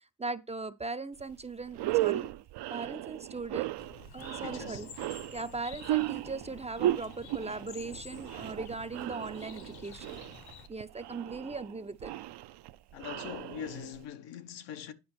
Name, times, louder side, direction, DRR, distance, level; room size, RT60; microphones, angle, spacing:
voice 1, 0.2-2.3 2.7-3.7 4.1-4.9 5.3-10.2 10.7-12.1, right 3 dB, 15° right, 0.4 m, -39 dB
sound 1, 1.2-1.3 1.7-14.0, right 15 dB, 70° right, 0.6 m, -35 dB
Bird, 3.8-10.7, left 7 dB, 60° left, 1.0 m, -51 dB
voice 2, 4.4-4.9 12.9-14.9, left 9 dB, 85° left, 1.0 m, -42 dB
9.5 x 5.0 x 4.3 m
cardioid pair, 100°, 42 cm